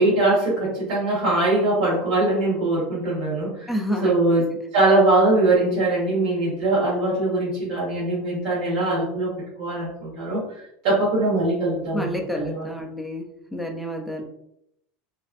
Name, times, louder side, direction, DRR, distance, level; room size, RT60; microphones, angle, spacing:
voice 1, 0.0-3.7 4.0-4.5 4.7-9.3 9.6-10.4 10.8-12.7, right 2 dB, 65° right, -8 dB, 1.3 m, -21 dB
voice 2, 3.7-4.2 11.9-13.2 13.5-14.2, equal, ahead, 2 dB, 0.4 m, -28 dB
3.0 x 2.5 x 2.5 m, 0.77 s
cardioid pair, 170°, 4 cm